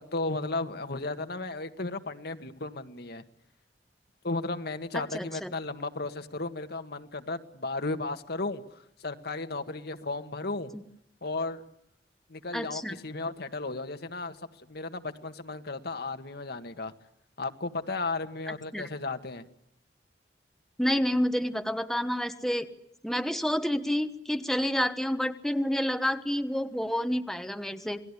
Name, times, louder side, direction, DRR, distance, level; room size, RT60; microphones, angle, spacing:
voice 1, 0.1-3.2 4.2-10.7 11.2-11.6 12.3-16.9 17.4-19.4, left 3 dB, 65° left, 8 dB, 1.8 m, -34 dB
voice 2, 4.9-5.5 12.5-13.0 18.7-18.8 20.8-22.7 23.0-28.0, equal, ahead, 8 dB, 1.2 m, -29 dB
28.5 x 19.5 x 9.9 m, 0.75 s
head